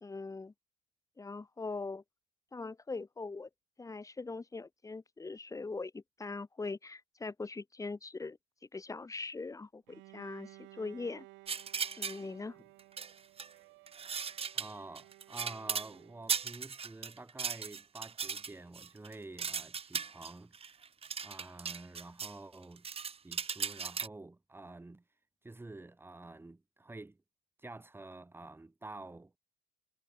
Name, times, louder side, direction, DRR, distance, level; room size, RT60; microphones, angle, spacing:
voice 1, 0.0-0.5 1.2-2.0 2.5-3.5 3.8-8.4 8.7-11.3 12.0-12.6, left 3 dB, 15° left, 1.8 m, -41 dB
Bowed string instrument, 9.9-16.6, right 22 dB, 75° right, 4.9 m, -57 dB
sound 1, 11.5-12.2 12.8-13.5 13.9-15.9 16.3-22.3 22.6-24.1, right 6 dB, 30° right, 2.3 m, -37 dB
voice 2, 14.5-20.8 21.2-25.0 25.4-27.2 27.6-29.4, right 2 dB, 10° right, 2.4 m, -49 dB
supercardioid pair, 100°, 20 cm